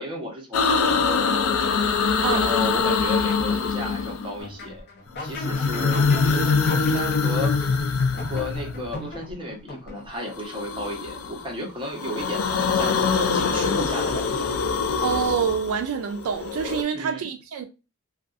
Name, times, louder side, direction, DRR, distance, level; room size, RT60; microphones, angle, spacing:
voice 1, 0.0-1.7 2.1-7.5 8.1-14.5 16.9-17.3, equal, 25° right, 0.9 m, -34 dB
sound 1, 0.5-4.5 5.2-9.0 10.3-11.5 11.8-16.8, left 5 dB, 75° left, 0.4 m, -24 dB
voice 2, 2.2-2.5 15.0-17.7, right 7 dB, 75° right, 0.3 m, -26 dB
sound 2, 4.4-10.3, left 1 dB, 50° left, 0.7 m, -38 dB
2.4 x 2.3 x 2.5 m
head